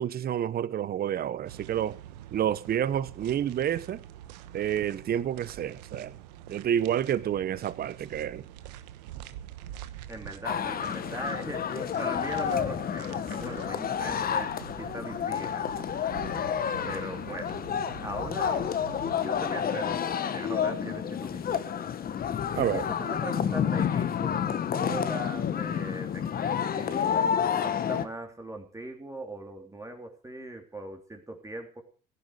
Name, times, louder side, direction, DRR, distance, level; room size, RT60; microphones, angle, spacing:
voice 1, 0.0-2.0 2.3-4.0 4.5-6.2 6.5-8.5 22.5-22.8, right 10 dB, 50° right, 1.0 m, -29 dB
sound 1, 1.5-19.1, right 12 dB, 85° right, 1.2 m, -46 dB
voice 2, 10.1-15.7 16.8-17.6 18.0-18.7 19.2-21.9 22.5-27.3 27.6-31.8, right 2 dB, 15° right, 3.2 m, -40 dB
sound 2, 10.4-28.1, left 8 dB, 45° left, 1.5 m, -30 dB
16.0 x 11.5 x 4.9 m
hypercardioid pair, 70°, 20 cm